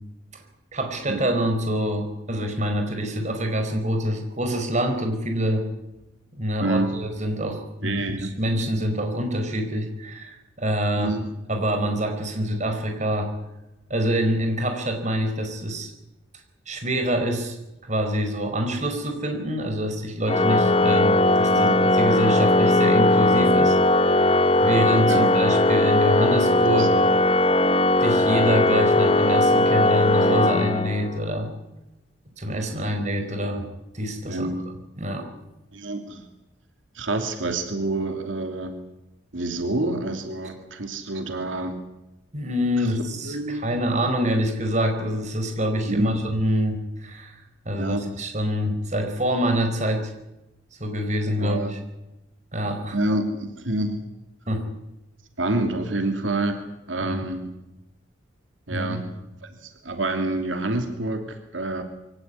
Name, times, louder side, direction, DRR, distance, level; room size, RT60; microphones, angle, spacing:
voice 1, 0.7-5.7 6.3-11.1 11.5-13.3 13.9-15.9 16.7-17.5 17.9-24.3 24.6-27.0 28.0-31.5 32.4-33.7 33.9-34.5 35.0-35.2 42.3-50.1 50.8-51.8 52.5-53.0 54.5-54.6 57.0-57.3 58.7-59.0, equal, 40° right, 5 dB, 4.8 m, -26 dB
voice 2, 6.6-6.9 7.8-8.3 11.0-11.3 21.5-21.8 25.1-25.3 26.8-27.1 32.7-32.9 33.3-33.4 34.3-34.7 35.7-36.3 36.9-38.8 39.3-41.8 42.8-42.9 43.2-43.8 45.8-46.2 47.8-48.2 51.4-51.7 52.9-54.0 55.4-57.5 58.7-59.1 59.5-61.8, right 2 dB, 90° right, 6 dB, 2.8 m, -28 dB
Organ, 20.3-31.2, left 1 dB, 30° left, 1.0 m, -19 dB
23.5 x 17.5 x 9.9 m, 0.96 s
head